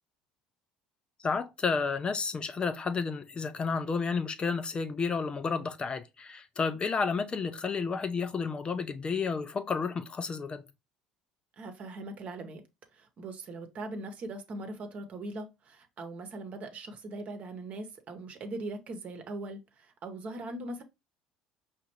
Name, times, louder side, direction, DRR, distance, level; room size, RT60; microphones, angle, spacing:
voice 1, 1.2-10.6, left 5 dB, 30° left, 0.5 m, -31 dB
voice 2, 11.6-12.6 12.9-20.8, right 2 dB, 45° right, 1.0 m, -40 dB
5.1 x 2.5 x 2.9 m
hypercardioid pair, 70°, 3 cm